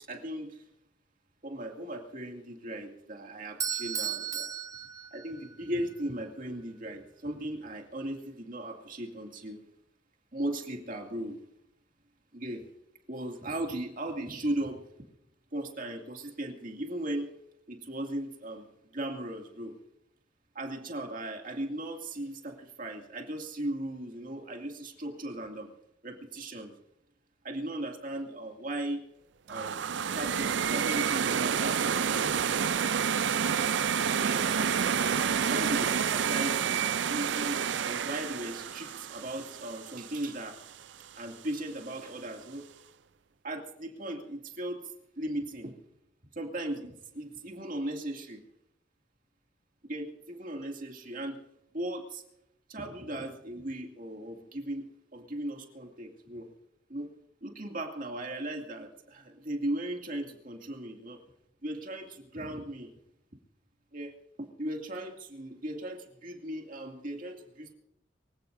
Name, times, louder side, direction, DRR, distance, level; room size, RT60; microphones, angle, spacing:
voice 1, 0.1-0.6 1.4-4.5 5.1-9.6 10.3-11.4 12.3-12.7 13.1-14.8 15.5-17.3 17.7-19.7 20.5-25.7 26.0-26.7 27.4-29.0 29.5-29.8 30.1-32.4 34.1-34.5 35.0-40.6 41.1-42.6 43.4-44.8 45.2-45.8 46.3-48.4 49.8-51.4 51.7-52.2 52.7-56.5 56.9-57.1 57.4-61.2 61.6-62.9 63.9-67.7, right 1 dB, 45° right, 2 dB, 2.4 m, -37 dB
Bell / Doorbell, 3.6-5.7, right 8 dB, 20° right, 0.5 m, -35 dB
sound 1, 29.5-40.5, right 7 dB, 65° right, 0.5 m, -29 dB
24.5 x 16.5 x 2.7 m, 0.81 s
head